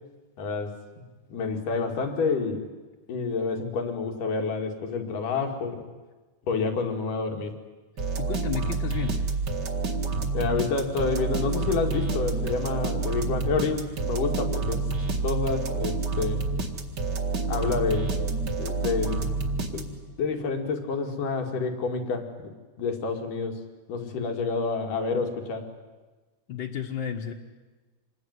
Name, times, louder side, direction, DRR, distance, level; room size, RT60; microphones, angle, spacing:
voice 1, 0.4-0.7 1.3-2.6 3.1-5.9 6.5-7.5 10.3-14.9 15.2-16.4 17.5-18.1 18.6-19.3 19.7-23.6 23.9-25.7, left 4 dB, 90° left, 4 dB, 4.0 m, -28 dB
sound 1, 8.0-20.2, right 3 dB, 35° right, 2.3 m, -28 dB
voice 2, 8.2-9.2 26.5-27.3, left 8 dB, 50° left, -1 dB, 1.7 m, -32 dB
26.5 x 21.0 x 9.6 m, 1.2 s
omnidirectional pair, 3.6 m